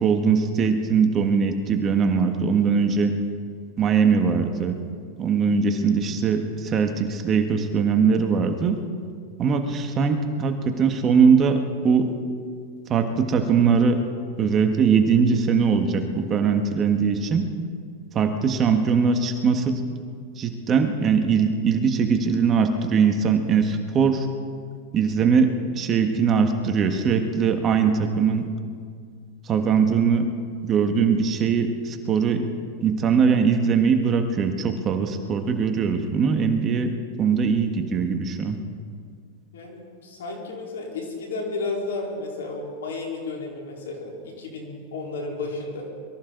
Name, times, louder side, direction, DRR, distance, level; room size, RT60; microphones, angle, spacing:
voice 1, 0.0-3.1 3.8-4.8 5.2-8.8 9.4-12.1 12.9-14.0 14.4-17.5 18.1-19.8 20.4-24.3 24.9-25.5 25.7-28.5 29.5-30.3 30.6-32.4 32.8-36.9 37.2-38.6, right 6 dB, 30° right, 5 dB, 1.5 m, -21 dB
voice 2, 39.5-45.9, left 3 dB, 85° left, -2 dB, 4.2 m, -32 dB
23.5 x 14.0 x 4.0 m, 2.1 s
hypercardioid pair, 120°, 0 cm